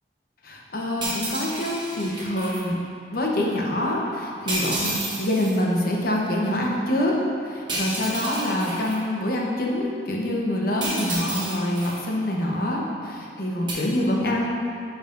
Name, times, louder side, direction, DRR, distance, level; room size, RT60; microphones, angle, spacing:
voice 1, 0.4-2.8 3.1-7.1 7.4-14.5, left 1 dB, 55° left, -2 dB, 0.9 m, -25 dB
sound 1, 1.0-2.6 4.5-5.6 7.7-9.0 10.8-12.0 13.7-13.8, right 1 dB, 25° right, 1.2 m, -30 dB
10.5 x 4.9 x 2.6 m, 2.4 s
head